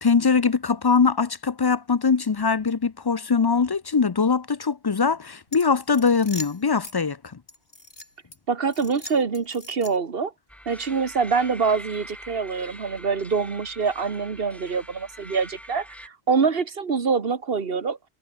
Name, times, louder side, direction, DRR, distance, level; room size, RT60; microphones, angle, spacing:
voice 1, 0.0-7.4, left 5 dB, 35° left, 0.4 m, -22 dB
sound 1, 5.5-7.0 7.5-8.4 8.7-10.2, left 2 dB, 65° left, 5.8 m, -41 dB
voice 2, 8.5-10.3 10.7-18.0, right 5 dB, 65° right, 1.6 m, -25 dB
sound 2, 10.5-16.1, equal, ahead, 6.0 m, -44 dB
omnidirectional pair, 1.1 m